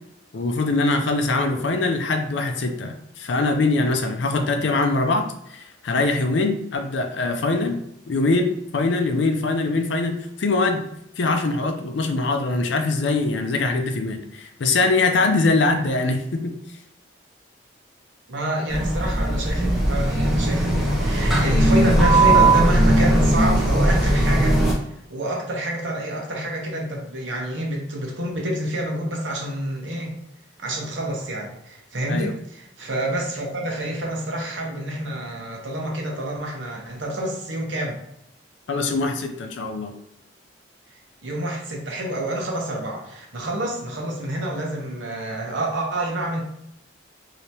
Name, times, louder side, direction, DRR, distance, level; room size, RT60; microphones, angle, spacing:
voice 1, 0.3-10.9 11.2-16.5 32.1-32.3 38.7-39.9, left 3 dB, 70° left, 5 dB, 0.4 m, -23 dB
voice 2, 18.3-24.6 25.1-30.2 30.6-38.0 41.2-46.4, right 1 dB, 75° right, 0 dB, 0.9 m, -28 dB
sound 1, 18.7-24.7, right 1 dB, ahead, 0.7 m, -18 dB
3.3 x 2.8 x 2.8 m, 0.79 s
head